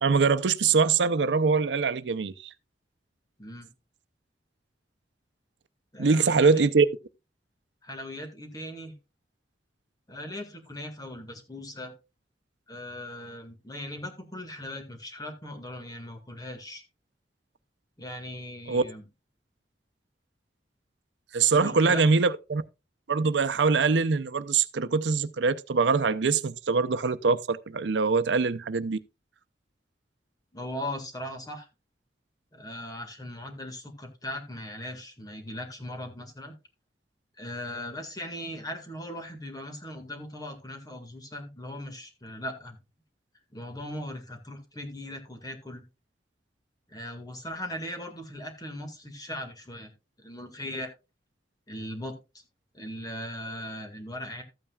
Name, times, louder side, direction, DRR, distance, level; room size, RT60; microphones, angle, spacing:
voice 1, 0.0-2.3 6.0-6.9 18.7-18.8 21.3-22.6 23.1-29.0, right 4 dB, 90° right, 0.6 m, -23 dB
voice 2, 3.4-3.7 5.9-6.6 7.8-8.9 10.1-11.9 12.7-16.8 18.0-19.0 21.5-22.1 30.5-31.7 32.5-36.6 37.4-42.8 43.5-45.8 46.9-49.9 50.2-50.9 51.7-52.2 52.7-54.4, left 1 dB, 20° left, 1.9 m, -39 dB
13.5 x 8.8 x 2.3 m
head